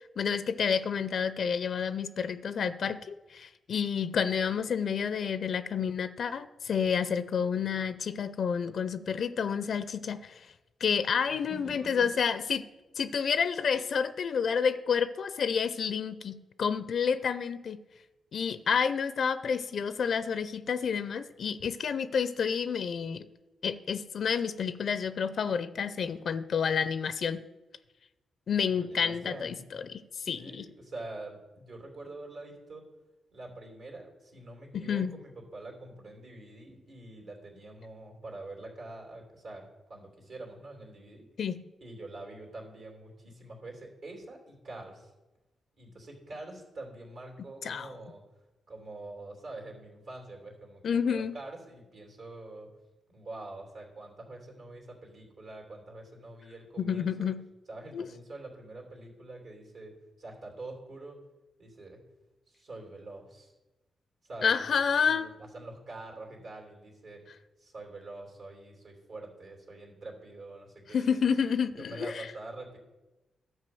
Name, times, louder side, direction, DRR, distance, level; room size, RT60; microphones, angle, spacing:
voice 1, 0.2-10.5 10.8-12.7 13.0-17.8 18.3-23.3 23.6-27.4 28.5-30.6 34.7-35.2 41.4-41.7 47.6-47.9 50.8-51.4 56.8-57.5 57.9-58.1 64.4-65.3 70.9-72.3, left 6 dB, 65° left, 14 dB, 0.4 m, -29 dB
voice 2, 11.3-12.1 28.7-29.6 30.4-32.8 33.3-41.3 41.8-45.1 45.8-48.2 48.7-52.7 53.1-57.3 57.7-59.9 60.2-61.2 61.6-62.0 62.5-63.5 64.2-67.2 67.6-71.2 71.8-72.8, right 2 dB, 70° right, 0 dB, 3.0 m, -45 dB
11.0 x 4.7 x 7.7 m, 1.1 s
cardioid pair, 65°, 0 cm